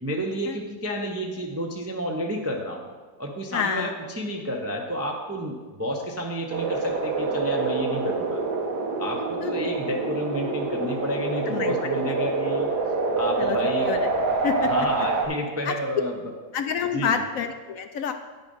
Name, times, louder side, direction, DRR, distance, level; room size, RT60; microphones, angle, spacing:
voice 1, 0.0-2.8 3.2-8.4 9.0-12.7 13.2-13.9 14.6-16.3 16.9-17.1, equal, 20° right, 1 dB, 0.4 m, -30 dB
voice 2, 3.5-4.0 9.4-9.6 11.5-11.8 13.4-13.6 13.9-14.1 14.4-14.7 15.7-15.8 16.5-18.1, left 7 dB, 70° left, 7 dB, 0.9 m, -28 dB
sound 1, 6.5-15.3, right 3 dB, 80° right, 1.6 m, -26 dB
10.0 x 5.7 x 5.4 m, 1.4 s
omnidirectional pair, 1.7 m